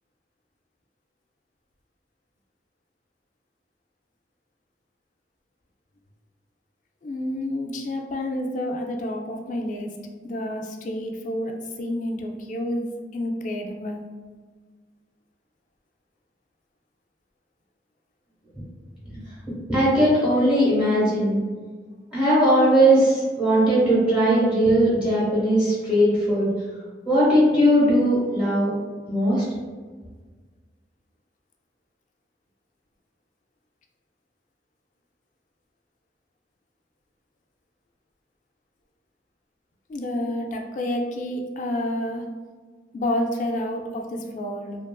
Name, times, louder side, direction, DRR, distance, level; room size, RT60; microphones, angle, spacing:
voice 1, 7.0-9.9 10.2-14.1 39.9-42.3 42.9-44.8, left 1 dB, 45° left, 2 dB, 0.3 m, -29 dB
voice 2, 19.7-21.3 22.1-26.5 27.1-28.7 29.1-29.4, equal, 5° right, -8 dB, 0.8 m, -19 dB
2.8 x 2.4 x 2.2 m, 1.5 s
head